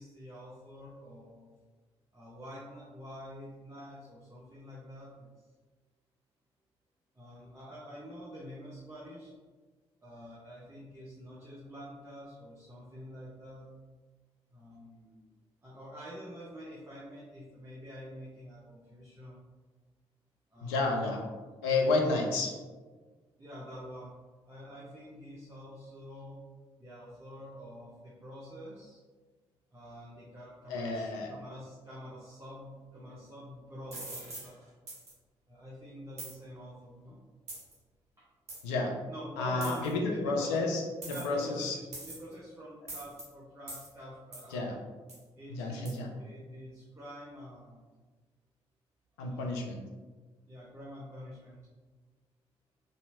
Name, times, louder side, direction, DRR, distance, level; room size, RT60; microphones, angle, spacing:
voice 1, 0.0-1.5 2.1-5.5 7.1-9.3 10.0-13.7 14.5-15.3 15.6-19.4 20.5-21.1 23.4-24.1 24.4-26.4 26.8-29.0 29.7-34.7 35.5-37.2 38.2-38.3 39.1-40.6 41.1-44.8 45.3-47.9 49.3-49.9 50.4-51.6, equal, 20° right, -7 dB, 0.9 m, -47 dB
voice 2, 20.6-21.2 21.6-22.5 30.7-31.3 38.6-38.9 39.4-41.7 44.5-44.8 45.5-46.1 49.2-49.8, left 3 dB, 75° left, 1 dB, 0.5 m, -30 dB
sound 1, 33.9-34.5 34.9-35.1 36.2-36.4 37.5-37.7 38.5-38.6 39.6-39.9 41.0-41.4 41.9-42.3 42.9-43.2 43.7-43.9 44.3-44.5 45.1-45.2 45.9-46.0, right 2 dB, 50° right, 1.4 m, -43 dB
3.1 x 2.7 x 2.7 m, 1.4 s
figure-of-eight pair, 40°, 14 cm